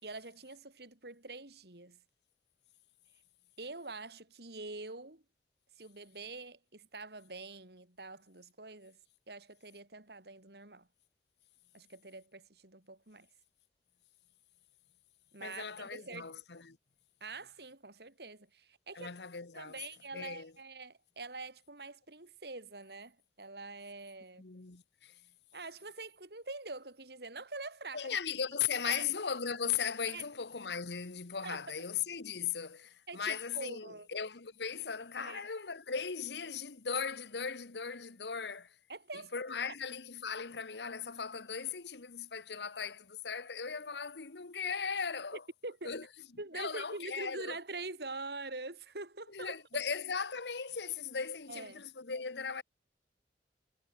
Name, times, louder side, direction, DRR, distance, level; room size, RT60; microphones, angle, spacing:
voice 1, 0.0-2.0 3.6-5.2 5.8-9.0 9.3-10.9 11.7-13.3 15.3-16.3 17.2-19.2 19.5-24.4 25.5-28.2 28.8-29.0 30.1-30.2 31.4-31.8 33.1-34.1 35.2-35.5 38.9-39.3 45.3-46.0 46.4-49.6 51.5-51.8, right 3 dB, 65° right, 3.5 m, -45 dB
voice 2, 15.4-16.8 18.9-19.7 20.1-20.5 24.4-25.1 27.9-38.7 39.3-45.4 45.8-46.0 46.5-47.6 49.3-52.6, left 6 dB, 75° left, 1.2 m, -38 dB
head